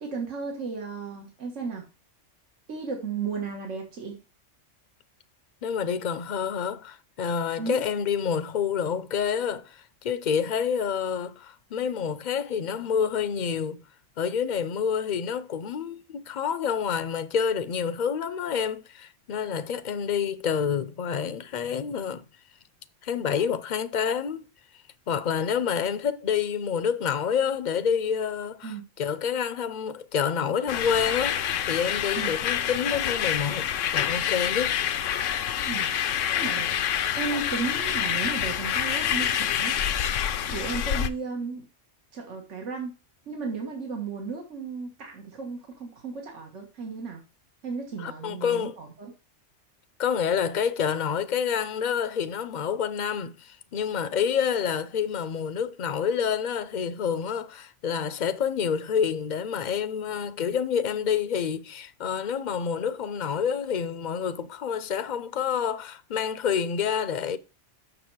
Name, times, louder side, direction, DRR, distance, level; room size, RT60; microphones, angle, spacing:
voice 1, 0.0-1.8 2.7-4.2 7.6-7.8 28.6-28.8 32.2-32.3 35.7-35.9 36.3-36.9 37.1-39.8 40.5-41.6 42.1-42.9 43.3-47.2 47.6-49.1, right 5 dB, 75° right, 1.9 m, -34 dB
voice 2, 5.6-13.8 14.2-22.2 23.0-24.4 25.1-34.8 48.0-48.8 50.0-67.4, left 7 dB, 45° left, 0.7 m, -28 dB
sound 1, 30.7-41.1, left 9 dB, 80° left, 1.0 m, -27 dB
7.0 x 6.5 x 4.6 m
omnidirectional pair, 1.3 m